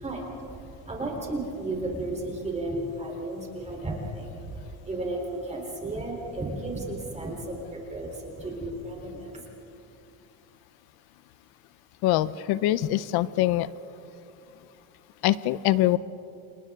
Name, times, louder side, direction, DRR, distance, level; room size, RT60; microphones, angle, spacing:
voice 1, 0.0-9.4, right 2 dB, 20° right, 0 dB, 3.7 m, -34 dB
voice 2, 12.0-13.7 15.2-16.0, left 15 dB, 90° left, 16 dB, 0.7 m, -23 dB
29.5 x 28.0 x 3.7 m, 2.7 s
cardioid pair, 135°, 37 cm